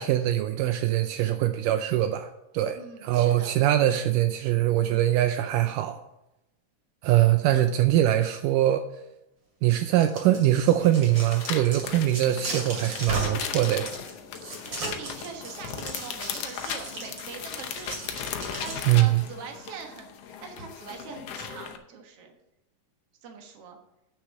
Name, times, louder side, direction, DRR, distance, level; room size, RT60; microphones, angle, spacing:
voice 1, 0.0-6.0 7.0-8.9 9.6-13.9 18.9-19.2, right 13 dB, 80° right, 8 dB, 2.1 m, -23 dB
voice 2, 2.8-3.5 14.7-17.9 18.6-20.1 20.4-22.3 23.2-23.8, right 6 dB, 55° right, 3 dB, 2.0 m, -42 dB
sound 1, 9.8-19.2, right 2 dB, 35° right, 2.8 m, -37 dB
sound 2, 10.8-21.8, left 8 dB, 75° left, 1.4 m, -37 dB
8.2 x 6.4 x 6.5 m, 0.91 s
omnidirectional pair, 3.9 m